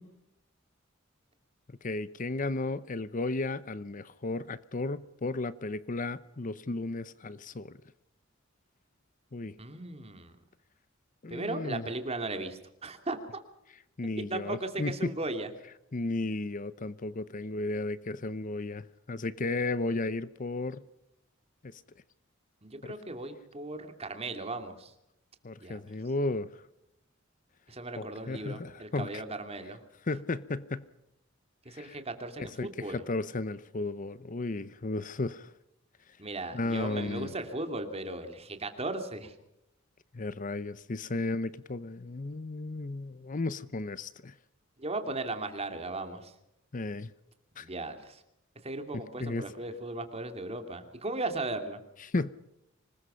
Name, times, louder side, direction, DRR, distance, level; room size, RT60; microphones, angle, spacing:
voice 1, 1.8-7.8 9.3-9.5 11.2-11.9 14.0-15.1 15.9-20.8 21.6-21.8 22.8-22.9 25.4-26.5 28.0-29.2 30.1-30.9 31.7-32.0 32.4-35.5 36.5-37.3 40.1-44.4 46.7-47.1 47.6-47.7 48.9-49.4 52.0-52.3, left 2 dB, 40° left, 0.7 m, -34 dB
voice 2, 9.6-10.3 11.3-13.4 14.2-15.5 22.6-24.9 25.6-25.8 27.7-29.8 31.6-33.0 36.2-39.3 44.8-46.3 47.6-48.2 48.6-51.8, right 2 dB, 30° right, 2.7 m, -37 dB
25.5 x 20.5 x 5.7 m
head